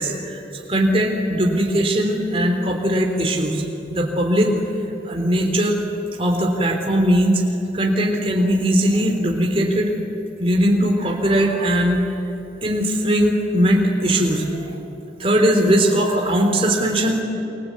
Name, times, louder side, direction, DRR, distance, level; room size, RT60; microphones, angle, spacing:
voice 1, 0.0-4.5 5.0-5.8 6.2-7.4 7.7-9.9 10.4-12.0 12.6-14.7 15.2-17.2, equal, 30° right, 2 dB, 3.5 m, -19 dB
27.5 x 24.5 x 8.4 m, 3.0 s
head